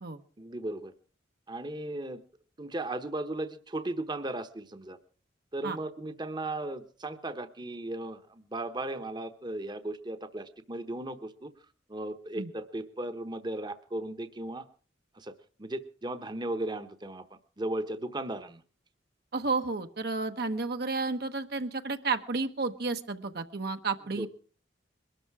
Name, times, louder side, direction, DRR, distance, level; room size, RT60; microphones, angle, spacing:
voice 1, 0.4-0.9 1.5-2.2 2.6-5.0 5.5-11.5 11.9-14.7 15.1-15.3 15.6-17.2 17.6-18.6 24.2-24.3, right 1 dB, 25° right, 9 dB, 1.0 m, -36 dB
voice 2, 19.3-24.3, right 3 dB, 60° right, 7 dB, 1.1 m, -32 dB
22.0 x 13.0 x 4.8 m, 0.41 s
head